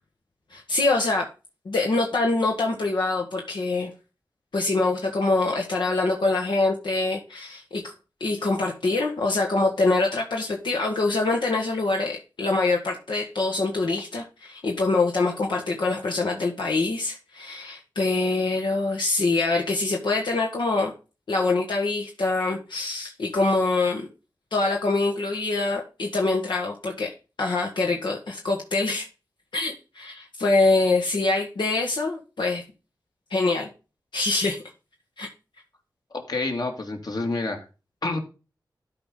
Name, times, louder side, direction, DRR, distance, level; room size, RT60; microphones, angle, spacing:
voice 1, 0.5-1.3 1.7-3.9 4.5-7.9 8.2-20.9 21.3-24.1 24.5-27.1 27.4-29.1 29.5-32.6 33.3-33.7 34.1-34.6 35.2-35.3, left 3 dB, 85° left, 0 dB, 1.6 m, -24 dB
voice 2, 36.1-37.6 38.0-38.2, left 2 dB, 60° left, 3 dB, 2.3 m, -28 dB
12.5 x 5.0 x 3.8 m, 0.31 s
wide cardioid pair, 65°, 8 cm